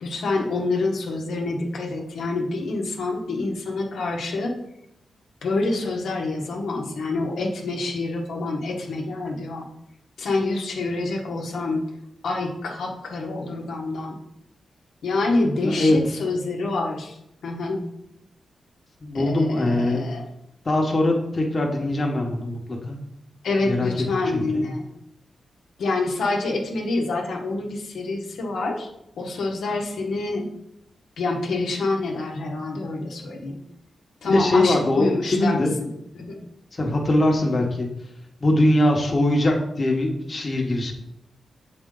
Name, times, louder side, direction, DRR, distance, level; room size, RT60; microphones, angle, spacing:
voice 1, 0.0-4.6 5.4-9.7 10.2-11.9 12.2-14.2 15.0-17.2 17.4-17.9 19.1-20.2 23.4-24.9 25.8-28.9 29.2-30.5 31.2-33.6 34.2-36.4, left 3 dB, 90° left, 0 dB, 1.0 m, -27 dB
voice 2, 15.6-16.0 19.0-20.0 20.6-23.0 23.6-24.6 34.2-35.7 36.7-37.9 38.4-40.9, left 1 dB, 40° left, 0 dB, 1.2 m, -22 dB
6.7 x 4.3 x 3.8 m, 0.79 s
wide cardioid pair, 100°, 0 cm